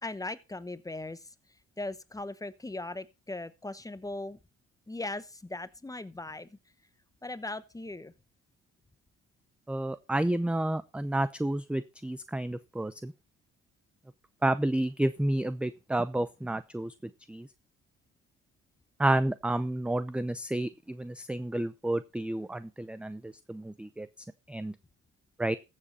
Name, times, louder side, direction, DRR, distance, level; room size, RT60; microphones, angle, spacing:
voice 1, 0.0-1.3 1.8-4.4 4.9-6.6 7.2-8.1, left 2 dB, 10° left, 0.9 m, -39 dB
voice 2, 9.7-13.1 14.4-16.9 17.3-17.5 19.0-24.1 24.5-24.7 25.4-25.6, right 1 dB, 5° right, 0.6 m, -30 dB
14.5 x 7.6 x 4.2 m
cardioid pair, 90°, 30 cm